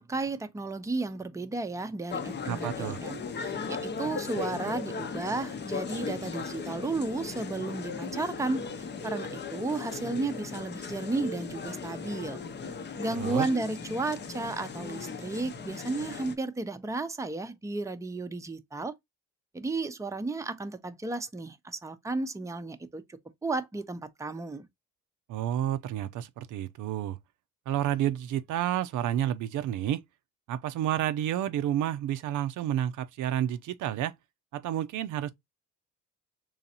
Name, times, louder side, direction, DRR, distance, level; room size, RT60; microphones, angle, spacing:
voice 1, 0.0-12.4 13.0-18.9 19.5-23.0 23.4-24.7, right 3 dB, 10° right, 0.6 m, -33 dB
sound 1, 2.1-16.4, left 5 dB, 35° left, 0.6 m, -37 dB
voice 2, 2.5-3.0 13.2-13.5 25.3-27.2 27.7-30.0 30.5-34.1 34.5-35.3, right 11 dB, 75° right, 0.5 m, -30 dB
3.9 x 3.2 x 2.8 m
cardioid pair, 90°, 30 cm